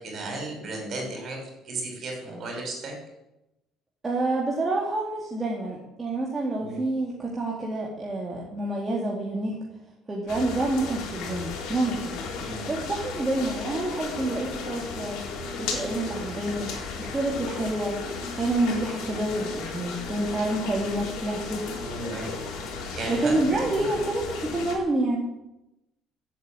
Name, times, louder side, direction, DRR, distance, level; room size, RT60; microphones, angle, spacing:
voice 1, 0.0-2.9 6.6-6.8 12.4-12.6 21.8-22.3 22.9-23.9, right 2 dB, 35° right, 2 dB, 5.6 m, -34 dB
voice 2, 4.0-9.6 10.1-12.2 12.7-15.2 15.6-16.7 17.0-18.0 18.3-21.7 23.1-25.3, right 2 dB, 15° right, -3 dB, 2.3 m, -28 dB
sound 1, 10.3-24.8, left 4 dB, 75° left, 3.9 m, -35 dB
15.0 x 8.6 x 8.6 m, 0.92 s
cardioid pair, 170°, 0 cm